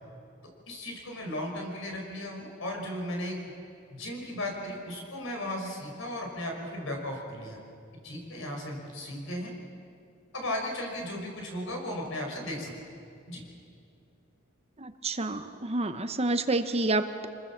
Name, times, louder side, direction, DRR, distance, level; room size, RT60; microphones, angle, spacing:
voice 1, 0.7-3.4 3.9-7.6 8.0-9.5 10.3-12.7 13.3-13.4, left 1 dB, 70° left, 1 dB, 5.4 m, -36 dB
voice 2, 14.8-17.3, right 2 dB, 30° right, 9 dB, 1.0 m, -29 dB
26.5 x 20.5 x 7.4 m, 2.5 s
head